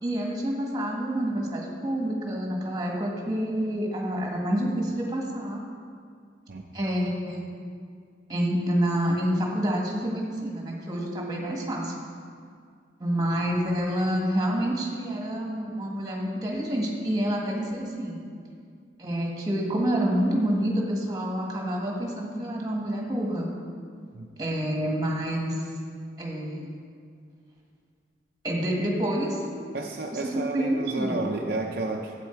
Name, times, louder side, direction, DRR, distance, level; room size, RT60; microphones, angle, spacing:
voice 1, 0.0-5.6 6.7-7.4 8.3-11.9 13.0-18.2 19.0-23.5 24.4-25.5 26.2-26.8 28.4-29.4 30.1-31.3, equal, 20° right, -1 dB, 1.7 m, -28 dB
voice 2, 29.7-32.1, right 2 dB, 50° right, 0 dB, 0.6 m, -31 dB
12.0 x 8.5 x 4.5 m, 2.2 s
head